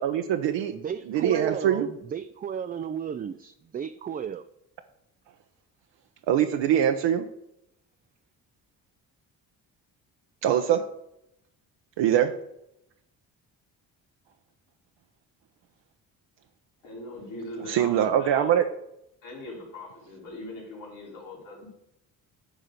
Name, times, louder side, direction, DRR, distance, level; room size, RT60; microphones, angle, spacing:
voice 1, 0.0-0.7 1.1-1.9 6.3-7.3 10.4-10.9 12.0-12.3 17.7-18.6, right 10 dB, 65° right, 5 dB, 0.8 m, -23 dB
voice 2, 0.7-4.4, right 7 dB, 20° right, 9 dB, 0.3 m, -33 dB
voice 3, 16.8-18.6 19.2-21.7, left 1 dB, 70° left, -3 dB, 3.6 m, -41 dB
10.0 x 3.7 x 6.6 m, 0.80 s
hypercardioid pair, 45°, 48 cm